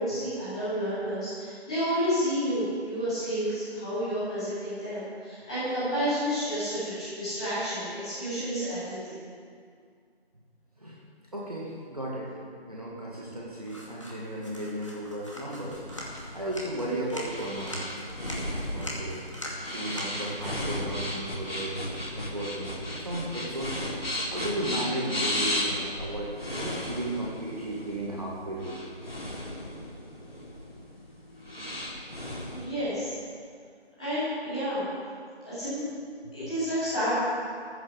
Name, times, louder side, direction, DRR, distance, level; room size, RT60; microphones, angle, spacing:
voice 1, 0.0-9.2 32.5-33.1 34.0-34.9 35.4-35.8 36.3-37.1, equal, 5° left, -16 dB, 3.4 m, -30 dB
voice 2, 11.3-12.3 12.7-15.8 16.3-17.8 18.7-19.2 19.7-23.9 24.3-28.8 36.2-36.5, right 1 dB, 35° right, -4 dB, 2.0 m, -35 dB
sound 1, 13.6-22.7, equal, 30° left, 2.2 m, -43 dB
sound 2, 15.7-32.7, left 1 dB, 60° left, 4.4 m, -35 dB
14.5 x 10.5 x 6.6 m, 2.2 s
figure-of-eight pair, 175°, 32 cm